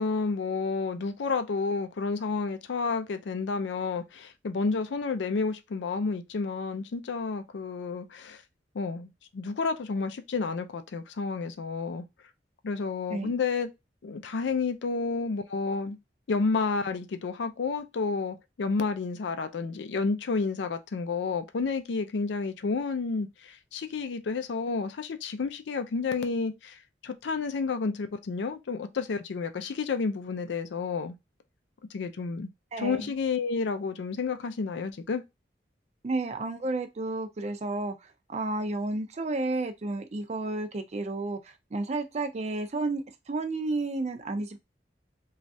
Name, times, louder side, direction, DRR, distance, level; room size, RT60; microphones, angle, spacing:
voice 1, 0.0-8.4 8.7-12.1 12.6-13.7 14.0-16.0 16.3-31.1 31.9-32.5 32.8-35.2, left 4 dB, 90° left, 0.4 m, -30 dB
voice 2, 32.7-33.1 36.0-44.6, right 2 dB, 40° right, 0.4 m, -32 dB
3.1 x 2.4 x 2.6 m
head